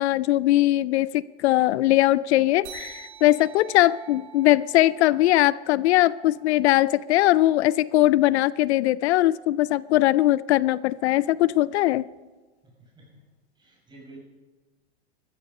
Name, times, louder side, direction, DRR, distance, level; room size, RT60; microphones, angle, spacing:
voice 1, 0.0-12.0, left 15 dB, 75° left, 20 dB, 0.5 m, -20 dB
sound 1, 2.6-7.6, right 8 dB, 80° right, 5.6 m, -47 dB
voice 2, 12.6-13.2 13.6-14.2, right 2 dB, 15° right, -1 dB, 6.0 m, -50 dB
14.0 x 13.5 x 5.4 m, 1.3 s
supercardioid pair, 125°, 33 cm